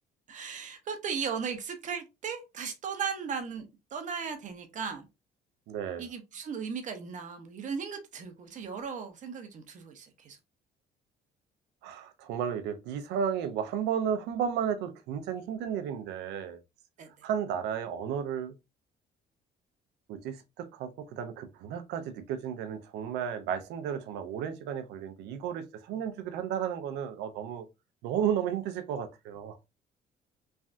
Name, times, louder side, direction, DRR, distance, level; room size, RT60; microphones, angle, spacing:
voice 1, 0.3-5.1 6.0-10.4 17.0-17.1, right 6 dB, 50° right, 0.7 m, -37 dB
voice 2, 5.7-6.0 11.8-16.6 17.2-18.5 20.1-27.7 28.0-29.6, right 8 dB, 85° right, 0.6 m, -33 dB
3.3 x 2.3 x 2.5 m
cardioid pair, 110°, 17 cm